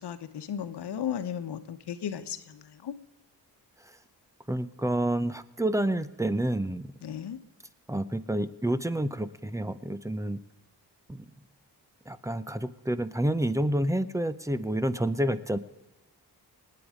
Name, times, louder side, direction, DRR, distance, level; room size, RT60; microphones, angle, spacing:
voice 1, 0.0-2.9 7.0-7.4, left 9 dB, 70° left, 10 dB, 1.2 m, -35 dB
voice 2, 4.5-6.9 7.9-10.4 11.1-11.3 12.1-15.6, right 1 dB, 10° right, 14 dB, 0.6 m, -29 dB
27.0 x 9.8 x 5.0 m, 1.1 s
wide cardioid pair, 135°, 41 cm